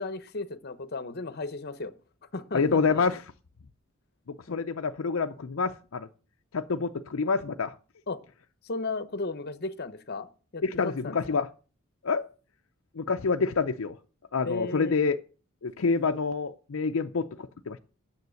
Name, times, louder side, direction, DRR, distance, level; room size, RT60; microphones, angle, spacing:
voice 1, 0.0-1.9 2.3-3.0 4.5-4.6 8.1-8.2 8.6-11.4 14.4-15.0, left 3 dB, 50° left, 0.9 m, -35 dB
voice 2, 2.5-3.2 4.5-6.1 6.5-7.7 10.6-11.5 12.0-12.3 13.0-14.0 14.3-15.2 15.6-17.8, left 4 dB, 70° left, 0.6 m, -27 dB
9.5 x 7.3 x 6.3 m
head